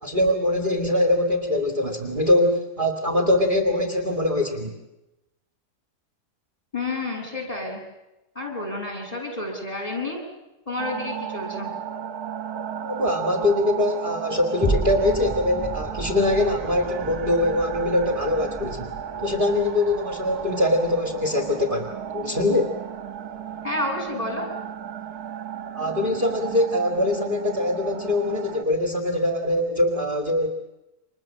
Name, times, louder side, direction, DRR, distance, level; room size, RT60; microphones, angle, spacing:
voice 1, 0.0-4.7 12.9-22.7 25.7-30.7, left 1 dB, 30° right, 3 dB, 2.3 m, -23 dB
voice 2, 6.7-7.8 8.3-10.2 10.7-11.7 23.6-24.5, left 2 dB, 20° left, 1 dB, 7.9 m, -30 dB
sound 1, 10.8-28.6, right 8 dB, 70° right, 1.9 m, -34 dB
sound 2, 14.6-23.2 23.7-23.8, right 1 dB, 5° right, 1.4 m, -34 dB
30.0 x 26.0 x 7.6 m, 0.96 s
omnidirectional pair, 1.7 m